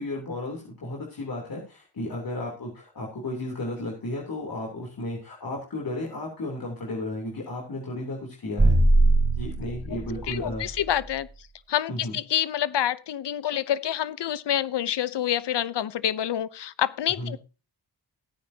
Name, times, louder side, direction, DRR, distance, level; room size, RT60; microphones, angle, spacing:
voice 1, 0.0-8.8 9.3-10.8 11.9-12.2 17.2-17.4, left 1 dB, 55° left, 3.4 m, -34 dB
sound 1, 8.6-11.0, right 2 dB, 20° right, 4.0 m, -22 dB
voice 2, 10.3-11.3 11.7-17.4, left 10 dB, 75° left, 0.8 m, -27 dB
17.0 x 9.6 x 2.9 m
cardioid pair, 90°, 42 cm